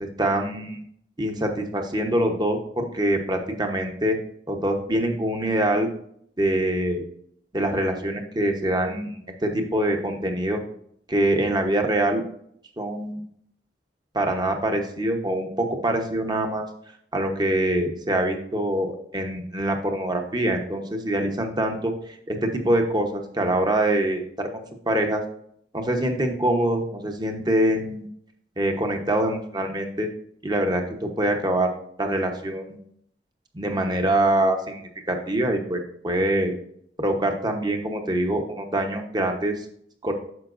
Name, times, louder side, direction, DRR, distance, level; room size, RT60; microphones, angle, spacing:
voice 1, 0.0-0.8 1.2-4.2 4.5-5.9 6.4-7.0 7.5-10.6 11.1-12.2 12.8-13.2 14.1-16.7 17.1-25.2 25.7-28.1 28.6-30.1 30.4-31.7 32.0-32.8 33.5-36.5 37.0-39.6 40.0-40.1, right 1 dB, 25° right, 4 dB, 1.0 m, -24 dB
9.6 x 7.0 x 2.6 m, 0.67 s
head